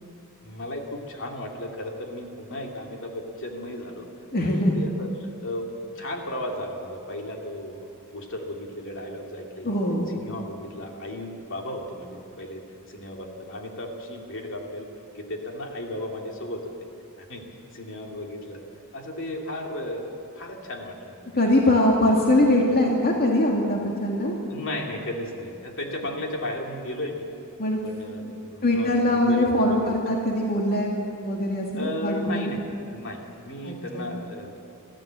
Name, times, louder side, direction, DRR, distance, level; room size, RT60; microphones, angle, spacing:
voice 1, 0.4-4.0 4.4-5.1 5.4-9.8 10.1-12.6 12.9-14.9 15.1-16.7 17.2-17.4 17.7-18.6 18.9-21.4 24.5-27.3 27.8-29.9 31.7-32.6 32.9-34.5, left 1 dB, 60° left, 1 dB, 2.6 m, -35 dB
voice 2, 4.3-4.7 9.6-10.1 21.3-24.4 27.6-27.8 28.3-28.4 28.6-30.9 31.2-32.5 33.6-34.1, left 1 dB, 45° left, -1 dB, 2.2 m, -22 dB
24.5 x 15.0 x 7.6 m, 2.6 s
head